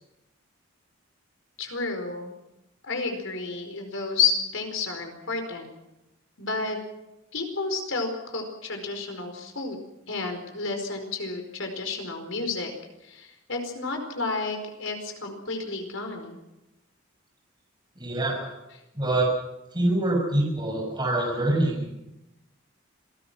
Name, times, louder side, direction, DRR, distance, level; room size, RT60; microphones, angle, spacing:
voice 1, 1.6-2.3 2.8-5.7 6.4-6.8 7.3-9.8 10.1-12.7 13.0-16.4, left 4 dB, 70° left, 4 dB, 4.7 m, -31 dB
voice 2, 18.0-18.5 18.9-19.3 19.7-21.9, right 1 dB, 20° right, -1 dB, 6.3 m, -25 dB
27.0 x 19.0 x 6.2 m, 0.94 s
head